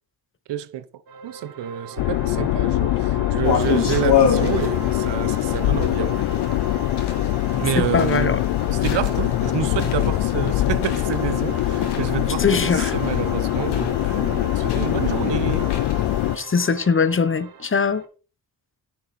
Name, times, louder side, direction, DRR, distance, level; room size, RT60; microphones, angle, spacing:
voice 1, 0.5-6.3 7.6-8.4 8.7-15.7, right 11 dB, 80° right, 0.9 m, -29 dB
sound 1, 1.1-18.0, right 6 dB, 60° right, 1.8 m, -39 dB
sound 2, 2.0-16.4, left 16 dB, 85° left, 0.6 m, -23 dB
sound 3, 3.4-16.4, left 6 dB, 70° left, 2.4 m, -29 dB
voice 2, 7.8-8.4 12.4-13.0 16.4-18.0, left 5 dB, 30° left, 0.8 m, -21 dB
9.7 x 6.6 x 4.2 m
cardioid pair, 80°, 42 cm